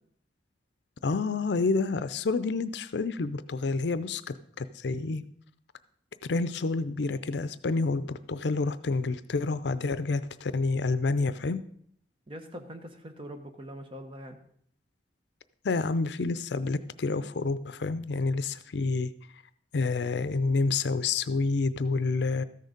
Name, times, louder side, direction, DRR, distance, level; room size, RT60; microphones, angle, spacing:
voice 1, 1.0-5.2 6.3-11.6 15.6-19.1 19.7-22.4, left 3 dB, 70° left, 14 dB, 0.5 m, -28 dB
voice 2, 12.3-14.4, equal, 30° right, 5 dB, 1.2 m, -43 dB
13.5 x 6.6 x 5.1 m, 0.64 s
head